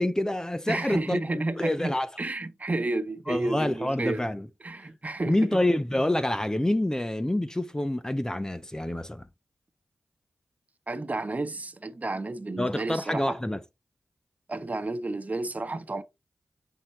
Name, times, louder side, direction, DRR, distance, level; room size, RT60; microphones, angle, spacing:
voice 1, 0.0-2.1 3.3-4.5 5.3-9.3 12.6-13.6, left 1 dB, 15° left, 0.7 m, -27 dB
voice 2, 0.7-4.3 4.6-5.6 10.9-13.4 14.5-16.0, right 2 dB, 40° right, 1.1 m, -31 dB
8.7 x 3.8 x 3.1 m
cardioid pair, 40°, 4 cm